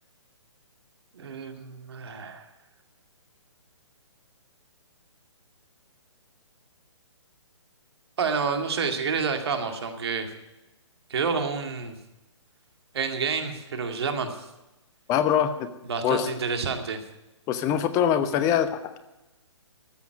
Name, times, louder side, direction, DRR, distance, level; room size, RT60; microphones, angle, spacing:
voice 1, 1.1-2.5 8.2-10.3 11.1-12.0 12.9-14.4 15.9-17.0, right 5 dB, 55° right, 6 dB, 2.2 m, -29 dB
voice 2, 15.1-15.7 16.0-16.3 17.5-19.0, left 9 dB, 20° left, 11 dB, 0.9 m, -23 dB
14.0 x 7.1 x 9.3 m, 0.97 s
figure-of-eight pair, 135°, 16 cm